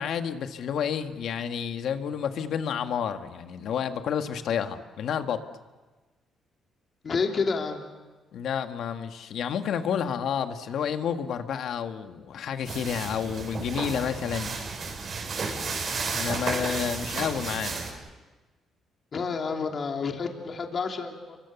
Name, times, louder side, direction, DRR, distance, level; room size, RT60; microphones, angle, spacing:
voice 1, 0.0-5.4 8.3-14.6 16.1-17.8, left 8 dB, 70° left, 7 dB, 1.6 m, -30 dB
voice 2, 7.0-7.8 15.5-15.8 19.1-21.4, left 5 dB, 45° left, 3 dB, 3.0 m, -30 dB
sound 1, 12.7-17.9, right 4 dB, 50° right, 6.2 m, -32 dB
28.5 x 24.0 x 7.1 m, 1.3 s
cardioid pair, 90°, 0 cm